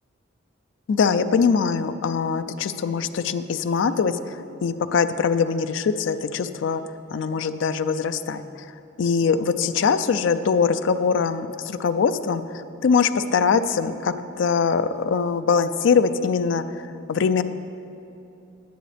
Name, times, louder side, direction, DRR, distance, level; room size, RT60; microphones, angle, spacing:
voice 1, 0.9-6.8 7.1-8.7 9.0-17.4, left 5 dB, 70° left, 12 dB, 0.4 m, -22 dB
10.0 x 9.1 x 3.4 m, 2.8 s
head